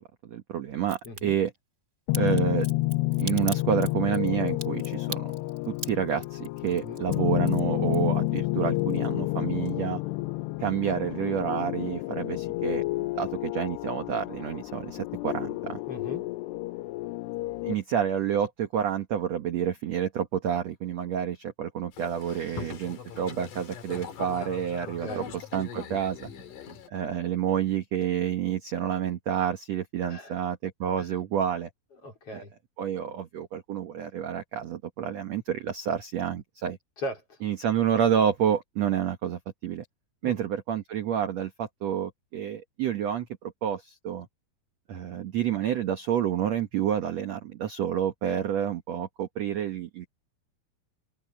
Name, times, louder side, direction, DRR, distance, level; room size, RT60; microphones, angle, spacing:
voice 1, 0.3-1.5 2.1-2.7 3.2-5.3 5.7-10.0 10.6-12.8 13.1-15.8 17.6-25.2 25.5-26.3 26.9-31.7 32.3-32.4 32.8-36.8 37.4-39.9 40.2-44.3 44.9-50.1, right 9 dB, 70° right, 1.6 m, -29 dB
Crack, 0.8-1.2 2.1-8.4 8.7-9.4 9.7-9.8, right 2 dB, 15° right, 4.2 m, -40 dB
voice 2, 1.0-1.4 6.8-7.0 15.9-16.2 25.0-25.3 30.0-30.4 31.0-31.1 32.0-32.5 37.0-37.4 40.2-40.4, left 1 dB, 35° left, 5.7 m, -38 dB
sound 1, 2.1-17.7, left 20 dB, 80° left, 2.7 m, -30 dB
Boat Water vehicle, 21.9-26.9, left 6 dB, 55° left, 3.6 m, -41 dB
open air
omnidirectional pair, 4.9 m